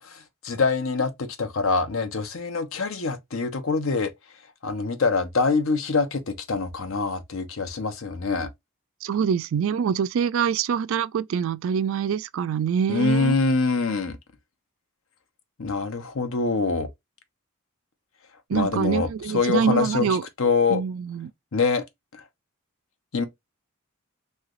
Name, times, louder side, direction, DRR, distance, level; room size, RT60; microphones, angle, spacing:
voice 1, 0.0-4.1 4.6-8.5 12.9-14.2 15.6-16.9 18.5-20.1 20.4-20.8 21.5-21.8 23.1-23.3, left 4 dB, 65° left, 0.7 m, -24 dB
voice 2, 9.0-13.4 18.5-20.2 20.7-21.3, right 7 dB, 65° right, 0.3 m, -25 dB
3.2 x 2.8 x 2.4 m
head